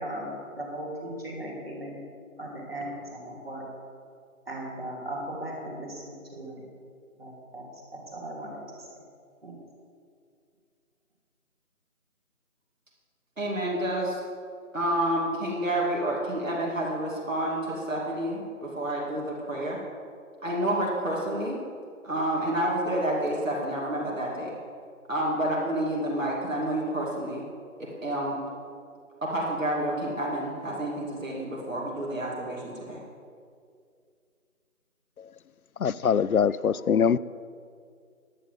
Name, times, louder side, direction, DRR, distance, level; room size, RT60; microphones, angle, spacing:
voice 1, 0.0-2.0 2.4-3.7 4.5-6.6 7.2-7.6 7.9-8.9 9.4-9.6, right 1 dB, 40° right, -3 dB, 2.9 m, -37 dB
voice 2, 13.4-14.2 14.7-19.8 20.4-21.6 22.0-24.5 25.1-27.4 27.8-28.4 29.2-33.0, right 1 dB, 60° right, -4 dB, 2.7 m, -29 dB
voice 3, 35.8-37.2, left 7 dB, 75° left, 18 dB, 0.5 m, -23 dB
11.0 x 8.2 x 7.5 m, 2.2 s
figure-of-eight pair, 170°, 44 cm